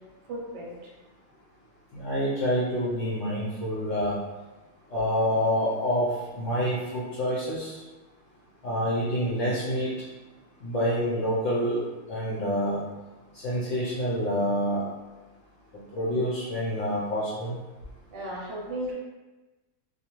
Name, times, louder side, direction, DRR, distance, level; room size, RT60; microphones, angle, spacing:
voice 1, 0.2-0.7 18.1-18.9, right 1 dB, 60° right, -4 dB, 0.9 m, -35 dB
voice 2, 1.9-4.2 4.9-7.8 8.6-9.9 10.6-11.8 12.1-12.8 13.3-14.8 15.9-17.6, equal, 65° left, -8 dB, 0.8 m, -27 dB
2.5 x 2.3 x 2.9 m, 1.2 s
omnidirectional pair, 1.5 m